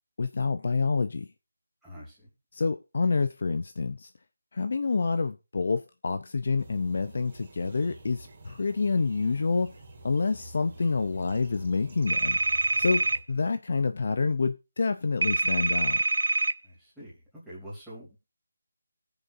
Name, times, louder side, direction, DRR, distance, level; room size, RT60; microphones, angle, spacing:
voice 1, 0.2-1.3 2.5-4.1 4.5-9.7 10.0-12.4 12.8-16.0, left 4 dB, 45° left, 0.6 m, -28 dB
voice 2, 1.8-2.3 10.2-10.4 16.6-18.2, equal, ahead, 3.2 m, -46 dB
sound 1, 6.6-13.2, right 1 dB, 30° right, 3.4 m, -48 dB
sound 2, 12.1-13.2 15.2-16.5, right 2 dB, 75° right, 0.5 m, -25 dB
19.5 x 7.0 x 2.7 m
figure-of-eight pair, 175°, 0 cm